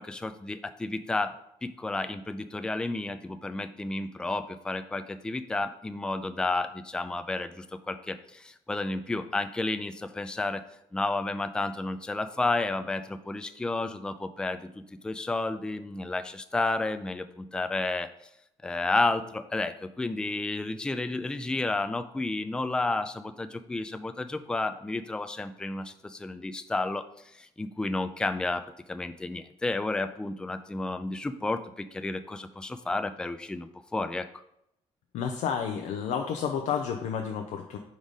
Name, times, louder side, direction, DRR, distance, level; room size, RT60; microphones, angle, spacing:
voice 1, 0.0-1.3 1.6-10.6 10.9-18.1 18.6-27.0 27.4-34.3, left 2 dB, 5° left, 10 dB, 0.3 m, -31 dB
voice 2, 35.1-37.8, left 7 dB, 85° left, 4 dB, 0.5 m, -30 dB
4.9 x 4.0 x 5.2 m, 0.78 s
cardioid pair, 120°, 12 cm